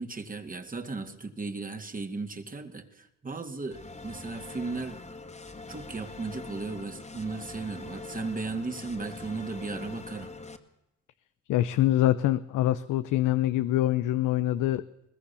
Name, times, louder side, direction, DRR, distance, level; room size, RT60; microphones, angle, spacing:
voice 1, 0.0-5.0 5.7-10.3, right 3 dB, 25° right, 6 dB, 2.4 m, -36 dB
sound 1, 3.7-10.6, left 3 dB, 20° left, 2.1 m, -43 dB
voice 2, 11.5-14.8, left 14 dB, 90° left, 13 dB, 0.8 m, -25 dB
21.5 x 20.0 x 7.1 m, 0.88 s
cardioid pair, 90°, 30 cm